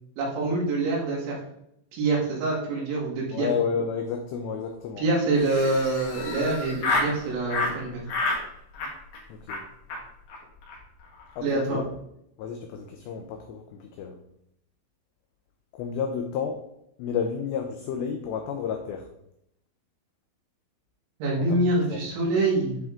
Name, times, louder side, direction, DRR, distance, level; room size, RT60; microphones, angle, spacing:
voice 1, 0.2-1.4 1.9-3.5 5.0-8.0 11.4-11.8 21.2-22.8, right 2 dB, 75° right, -3 dB, 4.1 m, -25 dB
voice 2, 3.3-5.0 9.3-9.6 11.4-11.8 12.4-14.2 15.7-16.7 17.0-19.1 21.4-21.6 21.9-22.0, left 6 dB, 90° left, 4 dB, 2.4 m, -31 dB
Laughter, 5.3-7.1 7.5-7.7 8.1-8.4 8.7-9.2 9.5-9.6 9.9-10.0 10.3-10.4 10.6-10.8 11.0-11.4, left 2 dB, 65° left, 3.4 m, -29 dB
10.5 x 3.6 x 3.7 m, 0.77 s
omnidirectional pair, 5.6 m